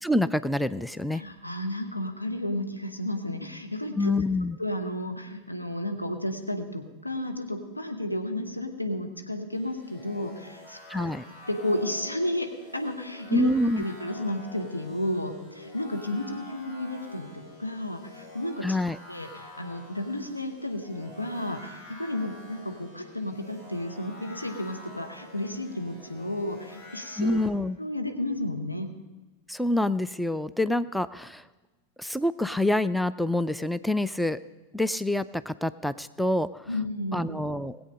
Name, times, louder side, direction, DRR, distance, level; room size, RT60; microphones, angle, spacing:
voice 1, 0.0-1.2 4.0-4.6 10.9-11.2 13.3-13.8 18.6-19.0 27.2-27.8 29.5-31.4 32.0-34.4 34.7-36.7 37.1-37.8, left 1 dB, ahead, 14 dB, 0.3 m, -26 dB
voice 2, 1.1-4.1 4.6-11.1 11.5-13.5 13.8-18.8 19.1-27.4 27.8-28.9 36.7-37.4, left 1 dB, 85° left, 5 dB, 1.3 m, -32 dB
sound 1, 9.5-27.5, left 1 dB, 45° left, 3.7 m, -48 dB
20.0 x 8.0 x 5.1 m, 1.2 s
figure-of-eight pair, 90°, 0 cm